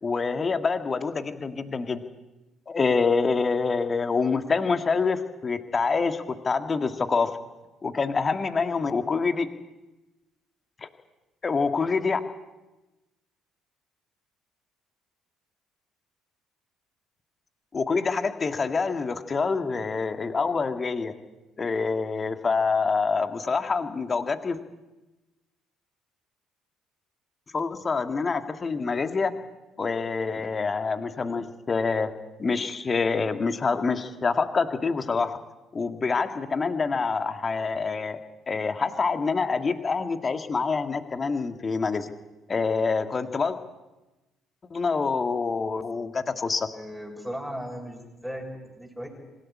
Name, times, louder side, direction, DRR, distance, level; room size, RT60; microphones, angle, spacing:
voice 1, 0.0-2.0 2.7-7.4 7.8-9.5 10.8-10.9 11.4-12.2 17.7-21.1 21.6-24.6 27.5-29.3 29.8-32.1 32.4-35.4 35.7-38.2 38.5-42.1 42.5-43.6 44.7-46.7, left 4 dB, 30° left, 8 dB, 1.8 m, -26 dB
voice 2, 46.7-48.4 48.8-49.1, equal, ahead, 0 dB, 6.5 m, -36 dB
25.5 x 14.0 x 9.8 m, 1.1 s
figure-of-eight pair, 50°, 0 cm